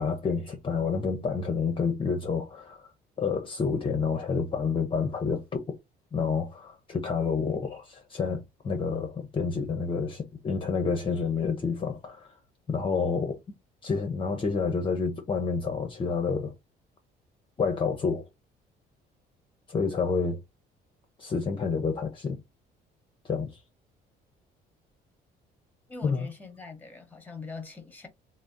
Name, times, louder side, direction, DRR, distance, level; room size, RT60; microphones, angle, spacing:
voice 1, 0.0-2.9 3.2-5.8 6.1-12.3 12.7-13.4 13.8-16.5 17.6-18.3 19.7-20.4 21.2-22.4 23.2-23.6 26.0-26.3, left 5 dB, 30° left, 0.6 m, -29 dB
voice 2, 25.9-28.1, left 4 dB, 10° left, 0.9 m, -42 dB
3.3 x 2.0 x 2.5 m
cardioid pair, 110°, 17 cm